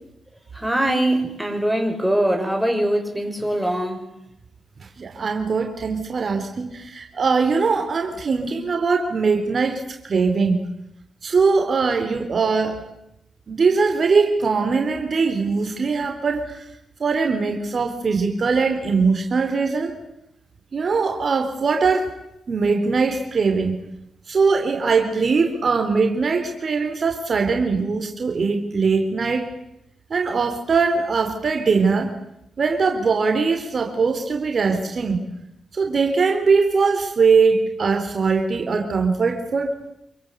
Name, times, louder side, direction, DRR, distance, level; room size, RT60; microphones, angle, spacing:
voice 1, 0.5-4.1, right 1 dB, 5° right, 7.2 m, -22 dB
voice 2, 5.0-10.6 11.2-12.8 13.5-16.6 17.0-20.0 20.7-22.1 22.5-23.8 24.3-29.5 30.1-32.1 32.6-35.2 35.7-39.7, right 4 dB, 50° right, 4.0 m, -21 dB
28.0 x 23.5 x 8.4 m
supercardioid pair, 55°, 0 cm